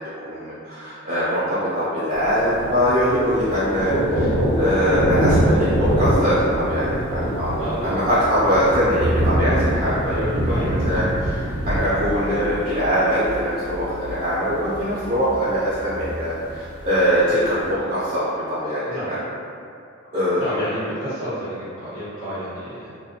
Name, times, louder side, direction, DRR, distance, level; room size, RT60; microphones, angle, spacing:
voice 1, 0.3-6.9 7.1-18.8 19.1-19.2 20.1-20.5, equal, 30° right, -11 dB, 0.4 m, -22 dB
Thunder, 2.1-17.7, equal, 90° right, 0.5 m, -24 dB
voice 2, 7.6-8.1 10.5-11.0 18.8-19.1 20.4-23.0, equal, 80° left, -12 dB, 1.2 m, -30 dB
2.4 x 2.1 x 2.7 m, 2.4 s
head